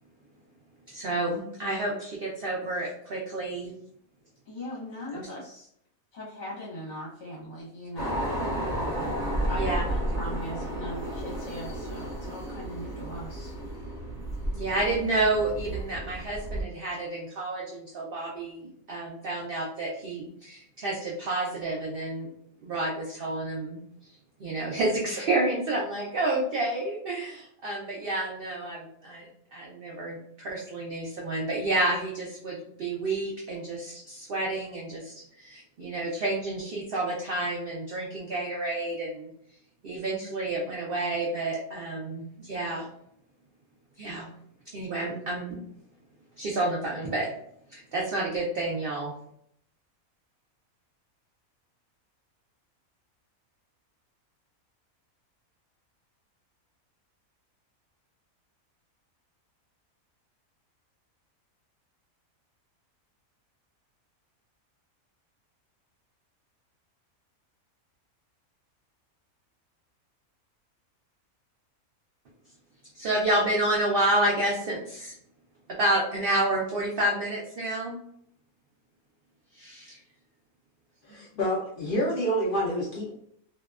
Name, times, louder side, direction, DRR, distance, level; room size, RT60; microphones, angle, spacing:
voice 1, 0.9-3.7 5.1-5.3 9.6-9.8 14.5-22.3 22.6-23.8 24.4-39.3 39.8-42.9 44.0-44.3 44.7-45.6 46.4-47.3 47.7-49.1 72.9-75.1 75.7-78.0 79.5-80.0, right 2 dB, 70° right, -2 dB, 0.5 m, -29 dB
voice 2, 4.4-5.7 6.1-8.2 9.5-13.5, equal, 60° left, -7 dB, 1.2 m, -39 dB
sound 1, 8.0-16.6, right 1 dB, 30° left, 1.1 m, -32 dB
voice 3, 81.0-83.1, equal, 75° left, -3 dB, 0.5 m, -28 dB
2.7 x 2.1 x 2.3 m, 0.68 s
omnidirectional pair, 1.5 m